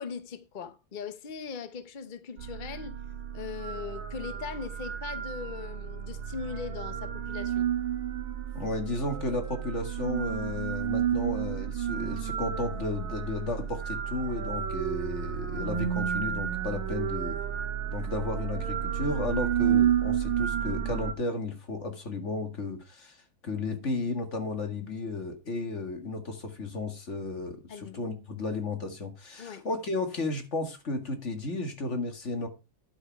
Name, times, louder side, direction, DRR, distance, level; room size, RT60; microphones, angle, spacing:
voice 1, 0.0-3.0 3.3-7.7 27.7-28.0 29.4-29.6, left 6 dB, 70° left, 0.4 m, -40 dB
sound 1, 2.4-21.1, right 9 dB, 80° right, 2.0 m, -31 dB
voice 2, 8.5-17.4 17.9-23.2 23.4-32.5, left 3 dB, 35° left, 2.1 m, -33 dB
11.5 x 6.2 x 4.6 m
omnidirectional pair, 2.2 m